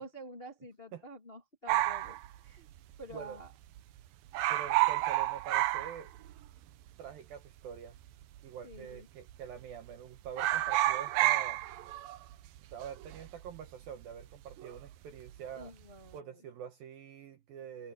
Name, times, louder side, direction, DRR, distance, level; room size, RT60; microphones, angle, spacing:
voice 1, 0.0-2.7 3.0-3.5 8.6-9.1 15.5-16.4, right 1 dB, 20° left, 1.8 m, -49 dB
sound 1, 1.7-3.2 3.4-3.5 3.8-4.0 4.3-6.6 6.9-7.0 7.8-8.4 8.7-9.0 9.3-9.9 10.3-14.9 15.2-15.6, right 15 dB, 85° right, 2.0 m, -31 dB
voice 2, 4.5-6.1 7.0-8.0 8.4-11.6 12.7-15.7 16.1-17.9, right 8 dB, 65° right, 2.5 m, -45 dB
omnidirectional pair, 5.3 m